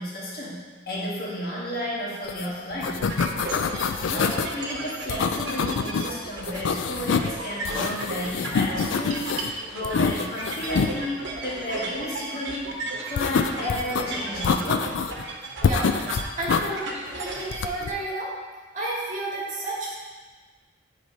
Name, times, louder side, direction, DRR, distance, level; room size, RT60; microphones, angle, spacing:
voice 1, 0.0-3.0 3.6-12.7 13.1-15.0, left 1 dB, 50° left, -5 dB, 1.4 m, -32 dB
sound 1, 2.3-2.5 2.7-4.5 5.1-6.1 6.4-7.3 7.6-9.5 9.8-10.9 13.2-14.0 14.4-15.2 15.6-16.7 17.5-17.9, left 5 dB, 85° left, 0.4 m, -26 dB
sound 2, 3.0-17.6, right 2 dB, 75° right, 0.9 m, -35 dB
voice 2, 16.4-16.9 17.2-18.3 18.7-19.9, right 2 dB, 40° right, -6 dB, 1.7 m, -31 dB
9.3 x 4.8 x 2.7 m, 1.3 s
head